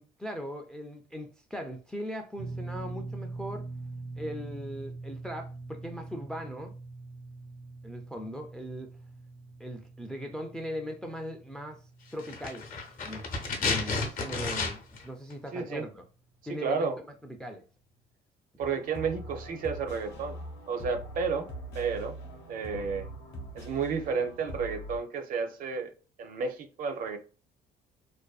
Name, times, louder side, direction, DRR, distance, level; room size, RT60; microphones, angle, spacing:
voice 1, 0.0-3.7 4.2-6.7 7.8-8.9 9.6-11.8 12.1-13.3 13.6-16.0 16.5-17.6, equal, 5° left, 0.3 m, -39 dB
sound 1, 2.4-14.6 14.9-15.1 16.8-16.9, right 3 dB, 80° right, 1.0 m, -43 dB
sound 2, 12.2-15.1 15.3-15.4, left 4 dB, 55° left, 0.7 m, -32 dB
voice 2, 15.5-15.8 16.6-17.0 18.6-20.4 20.7-21.5 21.7-22.2 22.5-23.1 23.5-25.9 26.2-27.2, right 5 dB, 55° right, 0.5 m, -31 dB
sound 3, 18.6-25.0, right 1 dB, 90° left, 0.8 m, -42 dB
2.5 x 2.2 x 2.3 m
cardioid pair, 110°, 17 cm